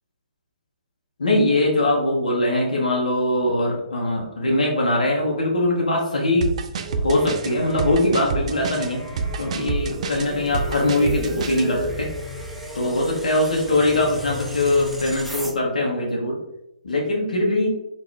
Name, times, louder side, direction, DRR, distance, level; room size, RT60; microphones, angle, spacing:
voice 1, 1.2-6.5 7.0-9.0 9.4-12.1 12.7-16.4 16.8-17.7, left 1 dB, 75° left, -2 dB, 0.8 m, -21 dB
sound 1, 6.4-11.7, right 5 dB, 55° right, 0.3 m, -28 dB
sound 2, 6.8-15.5, equal, ahead, 0.5 m, -34 dB
3.7 x 2.4 x 3.2 m, 0.86 s
figure-of-eight pair, 125°, 4 cm